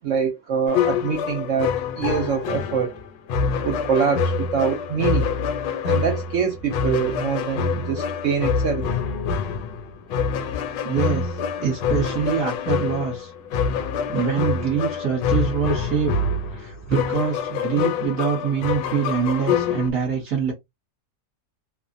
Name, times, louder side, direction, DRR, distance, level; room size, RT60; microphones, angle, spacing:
voice 1, 0.0-2.9 3.6-5.3 5.8-8.9, right 6 dB, 80° right, 0.6 m, -24 dB
sound 1, 0.7-19.9, left 6 dB, 80° left, 1.2 m, -26 dB
voice 2, 10.8-13.3 14.1-16.1 16.5-20.5, right 7 dB, 55° right, 1.2 m, -25 dB
3.0 x 2.1 x 2.5 m
omnidirectional pair, 2.0 m